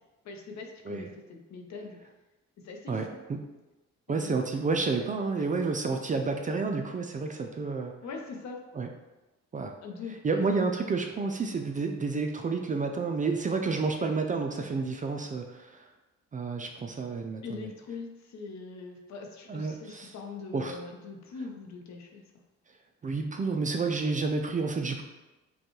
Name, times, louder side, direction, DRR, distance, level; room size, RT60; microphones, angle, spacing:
voice 1, 0.2-2.0 2.6-3.1 4.1-4.3 8.0-8.6 9.8-10.5 17.4-22.2, left 4 dB, 65° left, 2 dB, 0.8 m, -42 dB
voice 2, 2.9-3.4 4.1-7.9 8.7-8.9 9.5-9.7 10.2-15.8 16.3-17.7 19.5-20.1 20.5-20.8 23.0-25.0, right 4 dB, 25° right, 4 dB, 0.4 m, -30 dB
5.3 x 2.3 x 3.0 m, 1.1 s
cardioid pair, 90°, 30 cm